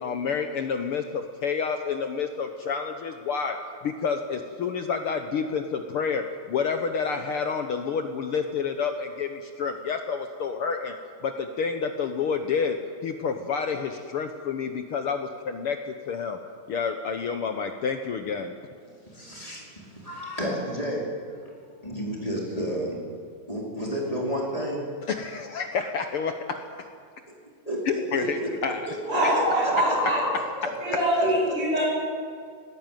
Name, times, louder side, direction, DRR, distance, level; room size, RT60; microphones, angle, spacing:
voice 1, 0.0-3.6 3.8-10.9 11.2-16.4 16.7-18.5 25.0-26.9 27.8-28.9, left 6 dB, 70° left, 6 dB, 1.3 m, -29 dB
voice 2, 19.1-19.6 19.9-21.0 21.8-23.0 23.5-24.9 27.6-28.5 28.9-29.9 30.3-31.3, equal, 10° left, -3 dB, 4.3 m, -31 dB
voice 3, 29.1-30.2 30.8-31.8, right 1 dB, 55° right, -8 dB, 8.1 m, -23 dB
19.0 x 17.5 x 9.2 m, 2.1 s
omnidirectional pair, 3.6 m